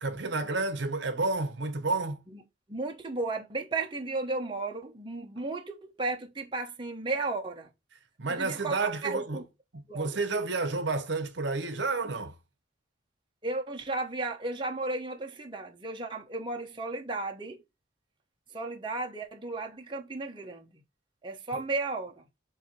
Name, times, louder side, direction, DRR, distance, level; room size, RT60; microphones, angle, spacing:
voice 1, 0.0-2.2 8.2-9.4 9.7-12.3, right 3 dB, 65° right, 1.0 m, -30 dB
voice 2, 2.7-7.7 8.3-9.4 9.9-10.2 13.4-17.6 18.5-20.8 21.2-22.2, right 3 dB, 25° right, 1.0 m, -34 dB
7.9 x 2.8 x 4.6 m
head